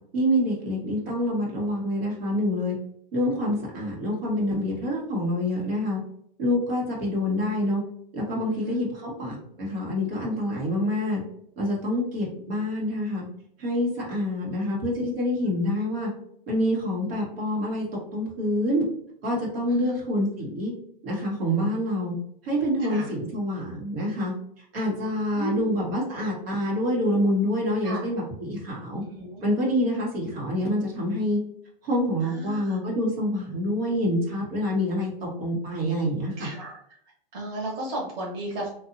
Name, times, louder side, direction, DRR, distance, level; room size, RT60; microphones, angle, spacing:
voice 1, 0.1-2.8 3.1-6.0 6.4-7.8 8.1-11.2 11.6-13.2 13.6-16.1 16.5-17.9 18.1-18.8 19.2-20.7 21.0-22.1 22.4-24.3 24.7-29.0 29.4-31.4 31.8-36.5, equal, 85° right, -4 dB, 1.4 m, -26 dB
voice 2, 22.8-23.1 25.3-25.7 27.8-28.0 29.0-29.4 32.2-32.8 36.4-36.8 37.3-38.7, right 2 dB, 45° right, -3 dB, 1.2 m, -34 dB
2.7 x 2.6 x 2.5 m, 0.68 s
hypercardioid pair, 140°, 29 cm